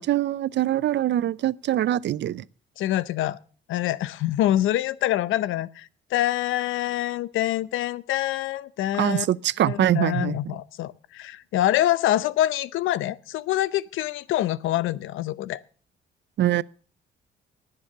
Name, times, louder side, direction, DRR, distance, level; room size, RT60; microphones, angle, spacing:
voice 1, 0.0-2.4 9.0-10.3 16.4-16.6, right 12 dB, 65° right, 0.6 m, -23 dB
voice 2, 2.8-3.4 3.7-9.3 9.7-15.6, left 13 dB, 85° left, 0.7 m, -25 dB
19.0 x 7.0 x 6.7 m
cardioid pair, 90°, 20 cm